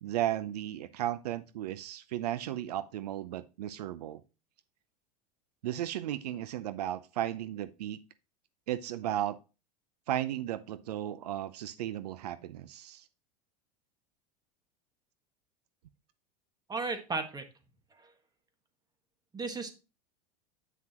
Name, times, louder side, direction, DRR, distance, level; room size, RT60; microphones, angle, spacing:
voice 1, 0.0-4.2 5.6-8.0 8.7-9.4 10.1-13.1, right 12 dB, 80° right, 0.6 m, -35 dB
voice 2, 16.7-17.4 19.3-19.7, right 3 dB, 20° right, 1.6 m, -34 dB
9.2 x 6.0 x 3.0 m
hypercardioid pair, 90°, 20 cm